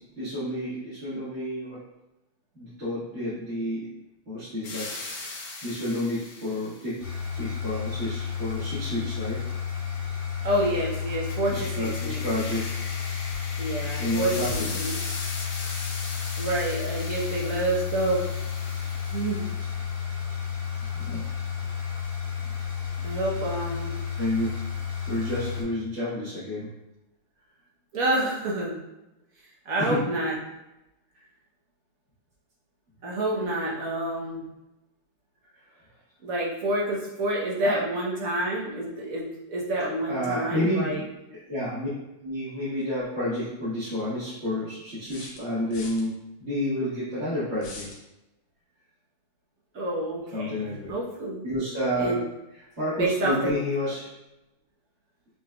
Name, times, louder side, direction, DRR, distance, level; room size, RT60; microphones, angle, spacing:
voice 1, 0.2-1.8 2.6-3.9 4.3-7.0 7.3-9.4 11.5-12.6 14.0-14.8 21.1-21.2 24.2-24.5 25.1-26.7 29.8-30.0 37.6-37.8 40.1-41.1 41.5-41.9 42.2-46.1 46.4-47.9 50.3-50.9 51.4-52.2 52.8-54.1, left 1 dB, 40° right, -14 dB, 1.9 m, -30 dB
sound 1, 4.6-7.0 10.9-19.9, left 3 dB, 85° left, 1.7 m, -39 dB
sound 2, 7.0-25.6, left 7 dB, 45° left, 1.3 m, -32 dB
voice 2, 10.4-12.2 13.6-15.0 16.4-18.2 19.1-19.5 23.0-24.0 27.9-28.7 29.6-30.4 33.0-34.4 36.2-41.0 49.7-51.5 51.9-52.2 52.9-53.5, right 1 dB, 55° right, -4 dB, 1.1 m, -28 dB
sound 3, 43.0-43.1 45.1-46.0 47.6-48.0, left 3 dB, 70° left, 1.4 m, -42 dB
6.1 x 3.3 x 2.2 m, 0.94 s
omnidirectional pair, 2.1 m